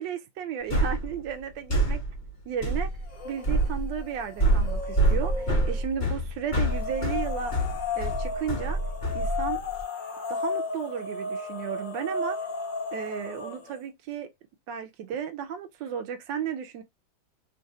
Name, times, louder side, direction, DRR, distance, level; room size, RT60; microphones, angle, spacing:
voice 1, 0.0-2.0 2.5-2.9 3.2-7.5 7.9-8.8 9.1-9.6 10.3-12.4 12.9-14.3 14.7-16.8, right 8 dB, 80° right, 1.3 m, -34 dB
sound 1, 0.7-9.8, right 1 dB, 25° left, 1.6 m, -27 dB
sound 2, 3.1-3.7 4.0-5.8 6.6-13.8, left 3 dB, 45° left, 0.6 m, -34 dB
3.2 x 2.5 x 2.6 m
omnidirectional pair, 2.0 m